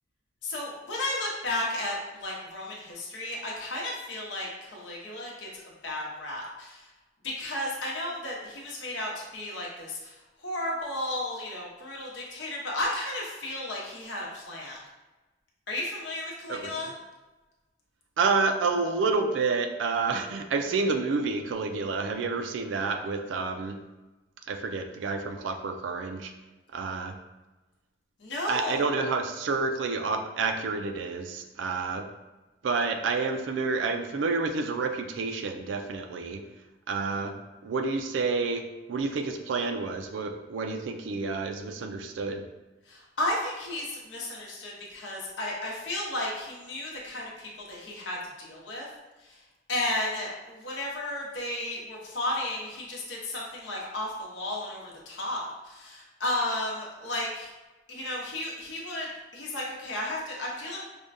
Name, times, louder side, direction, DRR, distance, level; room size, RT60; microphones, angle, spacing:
voice 1, 0.4-6.9 7.2-14.8 15.7-16.9 28.2-29.0 42.9-48.9 49.2-49.4 49.7-57.5 57.9-59.1 59.3-60.8, left 1 dB, 80° left, -3 dB, 0.9 m, -33 dB
voice 2, 18.2-23.8 24.5-26.3 26.7-27.1 28.5-32.1 32.6-36.4 36.9-37.3 37.6-42.4, right 4 dB, 80° right, 5 dB, 0.4 m, -29 dB
4.9 x 2.2 x 2.6 m, 1.1 s
head